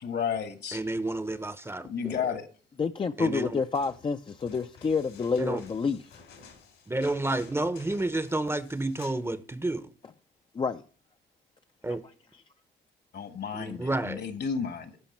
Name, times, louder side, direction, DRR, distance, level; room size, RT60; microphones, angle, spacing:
voice 1, 0.0-0.8 1.8-2.5 13.1-15.0, left 7 dB, 60° left, 1.4 m, -32 dB
voice 2, 0.7-2.2 3.2-3.6 5.4-5.6 6.9-9.9 11.8-12.0 13.5-14.2, right 2 dB, 10° right, 0.6 m, -30 dB
voice 3, 2.8-6.2 10.5-10.8, left 5 dB, 25° left, 0.4 m, -29 dB
sound 1, 3.6-9.3 9.5-9.6, left 5 dB, 80° left, 3.4 m, -53 dB
12.0 x 5.1 x 4.3 m
cardioid pair, 90°, 20 cm